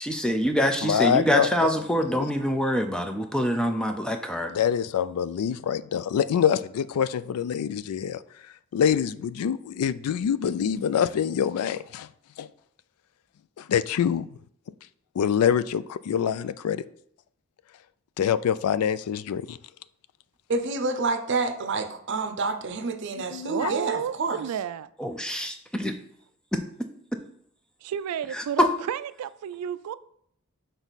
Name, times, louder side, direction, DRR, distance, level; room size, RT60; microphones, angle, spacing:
voice 1, 0.0-4.5 25.0-25.9 26.5-26.6 28.3-28.7, equal, 5° left, 0.4 m, -25 dB
voice 2, 0.8-1.7 2.0-2.3 4.5-8.2 8.7-12.1 12.4-12.5 13.6-14.3 15.2-16.8 18.2-19.6 23.3-23.7, left 8 dB, 90° left, 0.3 m, -25 dB
voice 3, 20.5-24.5, right 3 dB, 55° right, 0.6 m, -28 dB
voice 4, 23.5-24.9 27.8-29.9, right 9 dB, 90° right, 0.3 m, -31 dB
6.2 x 3.9 x 4.0 m
head